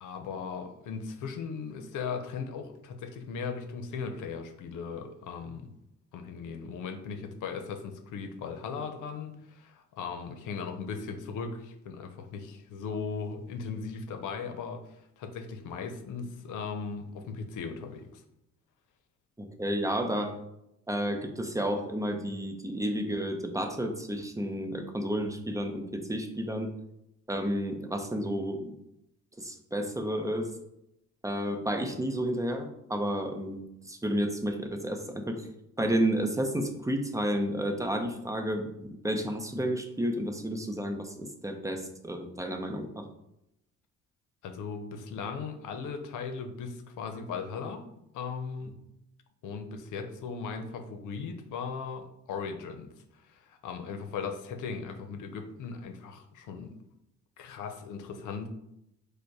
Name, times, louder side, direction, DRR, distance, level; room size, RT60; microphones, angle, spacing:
voice 1, 0.0-5.7 6.1-18.2 44.4-47.8 48.1-48.7 49.4-56.7 57.4-58.5, left 5 dB, 85° left, 7 dB, 0.7 m, -38 dB
voice 2, 19.4-20.3 20.9-26.7 27.3-28.7 29.4-30.5 31.2-35.5 35.8-43.0, equal, 10° right, 4 dB, 0.6 m, -31 dB
5.0 x 2.2 x 4.7 m, 0.82 s
cardioid pair, 90°, 30 cm